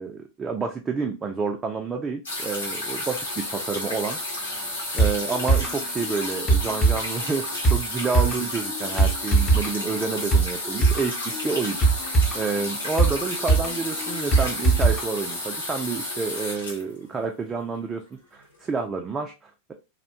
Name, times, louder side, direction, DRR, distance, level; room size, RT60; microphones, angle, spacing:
voice 1, 0.0-11.1 11.4-18.0 18.3-19.7, right 4 dB, 20° right, 3 dB, 0.3 m, -29 dB
sound 1, 2.3-17.6 18.5-18.6, left 1 dB, 70° left, 0.9 m, -32 dB
sound 2, 5.0-15.0 15.3-15.4, right 4 dB, 20° left, 0.6 m, -22 dB
2.3 x 2.1 x 2.7 m, 0.28 s
figure-of-eight pair, 90°, 0 cm